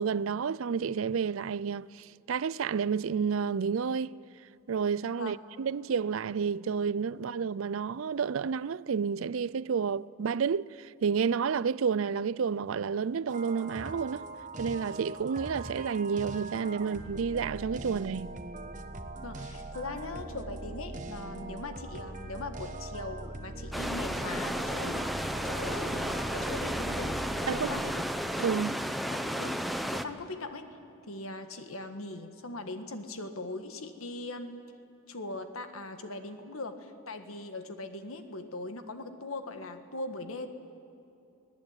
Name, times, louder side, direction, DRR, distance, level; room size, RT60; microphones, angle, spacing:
voice 1, 0.0-4.2 4.7-14.2 14.6-18.3 27.5-27.7 28.4-28.8, right 6 dB, 70° right, 0.4 m, -30 dB
sound 1, 13.3-27.9, right 2 dB, 35° right, 1.2 m, -41 dB
voice 2, 19.2-25.1 25.4-28.1 29.0-29.6 29.9-30.8 31.1-34.7 35.1-40.5, left 2 dB, 80° left, 1.7 m, -40 dB
sound 2, 23.7-30.0, equal, ahead, 0.7 m, -33 dB
25.0 x 18.0 x 8.9 m
head